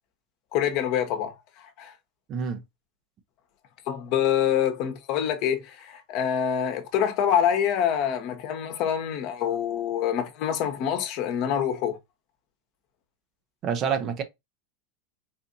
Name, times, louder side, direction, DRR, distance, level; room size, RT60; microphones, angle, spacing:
voice 1, 0.5-1.3 1.8-1.9 3.9-12.0, left 9 dB, 55° left, 0.9 m, -26 dB
voice 2, 2.3-2.6 13.6-14.2, right 7 dB, 40° right, 0.7 m, -27 dB
4.2 x 2.6 x 2.6 m
hypercardioid pair, 95°, 0 cm